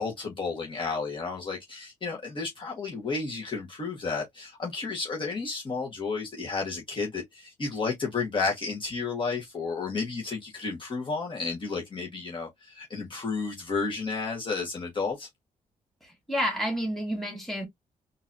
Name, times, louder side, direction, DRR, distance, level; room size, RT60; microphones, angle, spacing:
voice 1, 0.0-15.3, left 4 dB, 35° left, 1.4 m, -32 dB
voice 2, 16.0-17.7, equal, ahead, 2.1 m, -30 dB
3.8 x 2.7 x 2.6 m
cardioid pair, 110°, 14 cm